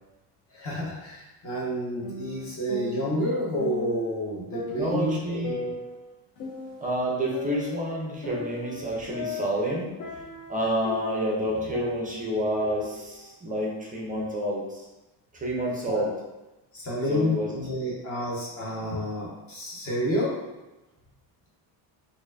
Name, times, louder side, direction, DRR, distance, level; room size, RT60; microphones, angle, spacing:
voice 1, 0.5-5.7 15.9-16.0 16.7-20.4, equal, 30° left, -6 dB, 0.9 m, -29 dB
sound 1, 2.0-4.1 4.5-7.0 7.3-11.4 11.7-13.7, left 5 dB, 50° left, 0.6 m, -37 dB
voice 2, 4.7-5.6 6.8-9.9 10.5-14.8 15.3-16.1 17.1-17.5, equal, 20° right, -3 dB, 0.5 m, -29 dB
4.3 x 2.6 x 2.5 m, 1.0 s
cardioid pair, 160°, 46 cm